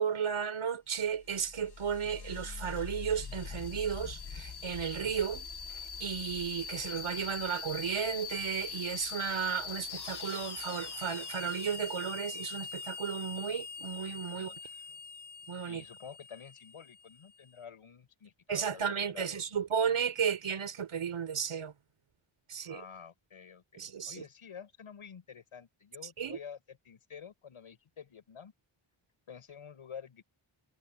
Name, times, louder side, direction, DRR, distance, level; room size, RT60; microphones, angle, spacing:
voice 1, 0.0-5.5 6.0-14.5 15.5-15.8 18.5-21.7 22.5-22.8 23.8-24.2 26.2-26.4, right 7 dB, 80° right, 5.0 m, -34 dB
sound 1, 1.1-17.4, left 5 dB, 50° left, 2.1 m, -43 dB
voice 2, 14.3-14.8 15.6-19.4 22.6-28.5 29.3-30.2, left 7 dB, 80° left, 7.9 m, -49 dB
cardioid pair, 75°, 49 cm